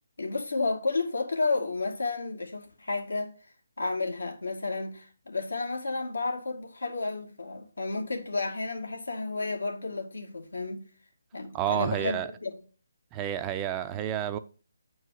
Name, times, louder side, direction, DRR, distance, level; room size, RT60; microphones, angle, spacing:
voice 1, 0.2-3.3 3.8-10.8 11.3-12.6, left 3 dB, 85° left, 2.4 m, -31 dB
voice 2, 11.5-12.3 13.1-14.4, right 10 dB, 20° right, 0.5 m, -30 dB
8.5 x 4.7 x 6.5 m
figure-of-eight pair, 155°, 0 cm